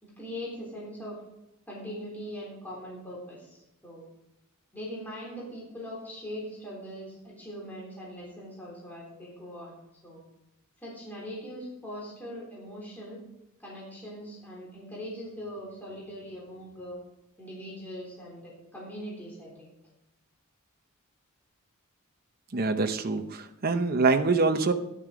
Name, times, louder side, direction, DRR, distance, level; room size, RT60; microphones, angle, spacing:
voice 1, 0.0-1.2 1.7-4.1 4.7-9.8 10.0-10.2 10.8-13.2 13.6-17.0 17.4-19.7, equal, 10° left, -5 dB, 3.6 m, -41 dB
voice 2, 22.5-24.7, right 3 dB, 45° right, 7 dB, 0.8 m, -25 dB
12.5 x 11.0 x 5.0 m, 0.91 s
head